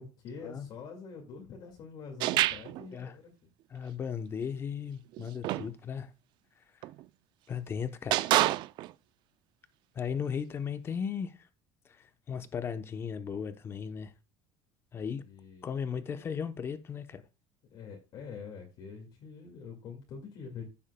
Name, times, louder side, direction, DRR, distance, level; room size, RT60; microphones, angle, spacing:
voice 1, 0.0-3.3 15.3-16.2 17.7-20.6, left 5 dB, 50° left, 2.0 m, -46 dB
sound 1, 2.2-2.9 5.1-5.7 6.8-7.0 8.1-8.9, right 16 dB, 55° right, 0.4 m, -27 dB
voice 2, 3.7-6.1 7.5-8.4 9.9-11.3 11.9-14.1 14.9-15.2 15.6-17.2, left 7 dB, 25° left, 0.8 m, -36 dB
15.0 x 7.2 x 2.2 m
cardioid pair, 165°, 10 cm